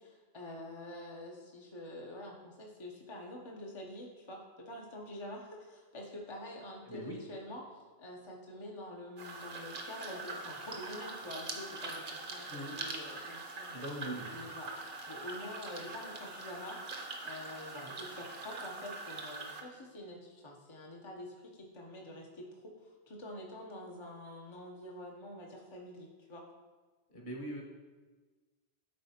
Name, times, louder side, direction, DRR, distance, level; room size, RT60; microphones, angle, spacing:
voice 1, 0.0-13.9 14.3-14.7 15.1-26.5, left 1 dB, 30° left, -1 dB, 0.6 m, -47 dB
voice 2, 6.9-7.2 12.5-12.8 13.7-14.3 27.1-27.6, right 1 dB, 45° left, -2 dB, 1.4 m, -41 dB
sound 1, 9.2-19.6, right 3 dB, 50° right, 0.9 m, -43 dB
11.0 x 4.1 x 2.8 m, 1.3 s
omnidirectional pair, 1.1 m